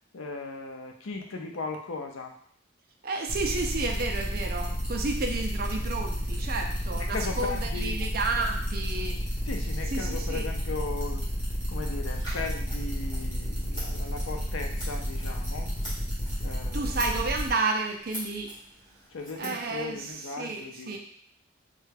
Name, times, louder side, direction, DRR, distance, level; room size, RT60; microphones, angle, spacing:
voice 1, 0.1-2.3 7.1-8.0 9.5-11.2 11.7-15.7 16.4-17.0 19.1-21.0, left 3 dB, 90° left, 3 dB, 0.5 m, -37 dB
voice 2, 3.0-9.2 9.9-10.5 16.7-18.5 19.4-21.0, right 3 dB, 50° right, 3 dB, 0.4 m, -31 dB
sound 1, 3.3-17.5, equal, 5° right, 1.0 m, -31 dB
Scissors, 12.1-20.1, equal, 20° left, 1.3 m, -45 dB
3.2 x 2.3 x 3.3 m, 0.62 s
head